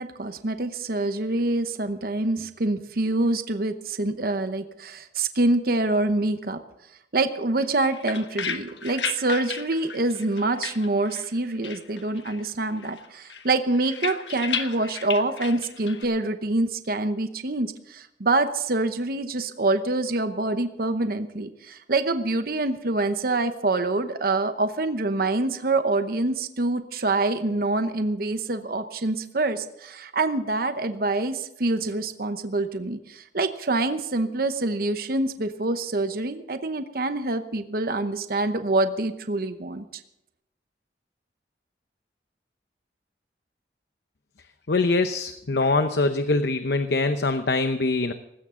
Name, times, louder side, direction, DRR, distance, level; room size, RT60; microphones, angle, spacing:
voice 1, 0.0-6.6 7.1-40.0, right 2 dB, 55° right, 9 dB, 0.9 m, -26 dB
sound 1, 7.6-11.4 11.6-12.5 12.8-16.0, left 7 dB, 85° left, 1.3 m, -34 dB
voice 2, 44.7-48.1, left 3 dB, 65° left, 9 dB, 0.8 m, -23 dB
19.0 x 16.5 x 3.8 m, 0.85 s
head